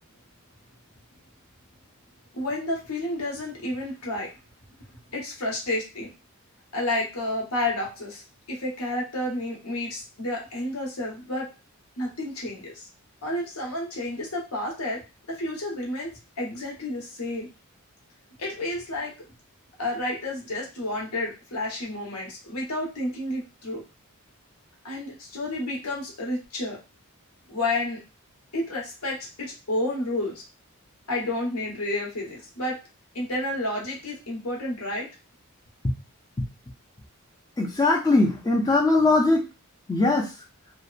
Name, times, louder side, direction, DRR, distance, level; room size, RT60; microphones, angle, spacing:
voice 1, 2.3-4.3 5.1-6.1 6.7-11.5 12.0-12.9 13.2-15.0 15.3-17.5 18.4-19.1 19.8-23.8 24.8-26.8 27.5-28.0 28.5-30.4 31.1-32.8 33.1-35.1, left 1 dB, 80° left, -2 dB, 1.0 m, -30 dB
voice 2, 37.6-39.4 39.9-40.3, left 2 dB, 15° left, 2 dB, 0.4 m, -20 dB
2.8 x 2.1 x 2.4 m, 0.29 s
head